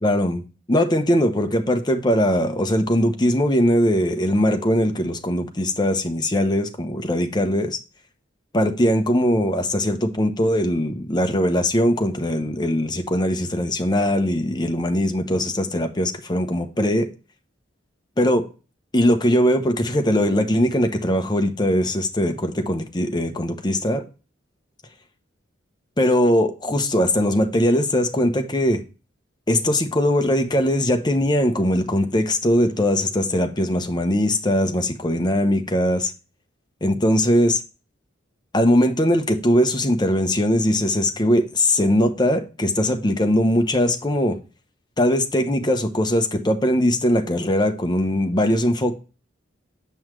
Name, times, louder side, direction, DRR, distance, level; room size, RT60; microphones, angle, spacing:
voice 1, 0.0-0.4 0.7-7.8 8.5-17.1 18.2-18.4 18.9-24.0 26.0-28.8 29.5-36.1 36.8-37.6 38.5-44.4 45.0-48.9, left 1 dB, 25° left, 0.9 m, -20 dB
7.5 x 5.6 x 3.2 m
head